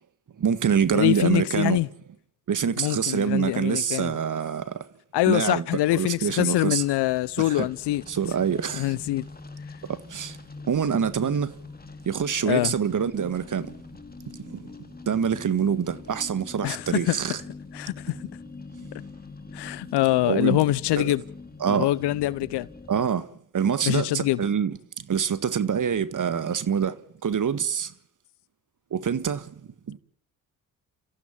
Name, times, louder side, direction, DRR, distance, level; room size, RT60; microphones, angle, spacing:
voice 1, 0.4-1.8 2.5-4.8 5.3-5.7 5.9-6.8 7.4-7.7 8.1-9.0 9.9-10.4 10.7-11.6 12.1-13.7 14.4-14.6 15.1-17.4 20.2-20.6 21.0-21.2 21.6-21.9 22.9-23.3 23.5-27.0 27.2-27.9 28.9-29.5 29.9-30.0, right 7 dB, 45° right, 1.8 m, -25 dB
voice 2, 0.9-1.9 2.8-4.1 5.1-8.0 8.8-9.3 12.5-12.7 16.6-17.2 17.7-18.1 19.5-21.2 21.7-22.7 23.8-24.4, left 16 dB, 70° left, 0.9 m, -24 dB
sound 1, 6.6-23.1, left 3 dB, 20° left, 2.7 m, -44 dB
29.5 x 15.0 x 7.4 m
hypercardioid pair, 45°, 43 cm